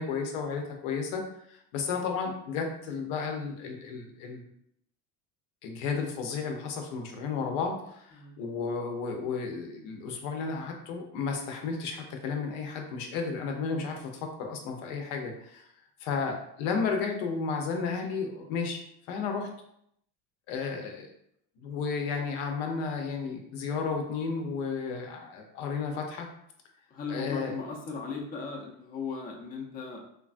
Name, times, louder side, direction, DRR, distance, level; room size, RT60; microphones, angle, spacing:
voice 1, 0.0-4.4 5.6-15.7 16.0-19.5 20.5-21.1 21.6-26.3 27.1-27.5, left 5 dB, 80° left, 3 dB, 0.7 m, -33 dB
voice 2, 26.9-30.0, left 4 dB, 25° left, 0 dB, 0.4 m, -37 dB
3.2 x 2.2 x 2.5 m, 0.73 s
supercardioid pair, 125°, 39 cm